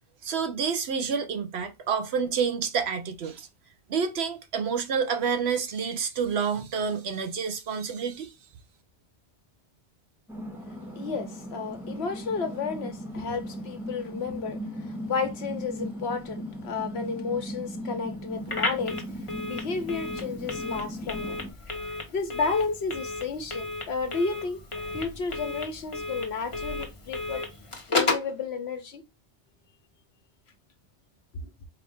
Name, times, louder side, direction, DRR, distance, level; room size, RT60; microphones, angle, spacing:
voice 1, 0.2-3.5 3.9-8.3, right 6 dB, 70° right, 1.0 m, -28 dB
sound 1, 10.3-21.5, equal, ahead, 0.6 m, -38 dB
voice 2, 10.9-21.4 22.1-24.6 24.9-27.4 27.9-29.0, left 5 dB, 70° left, 1.1 m, -32 dB
Telephone, 18.5-28.3, left 3 dB, 30° left, 1.1 m, -33 dB
4.6 x 2.6 x 3.4 m
omnidirectional pair, 1.1 m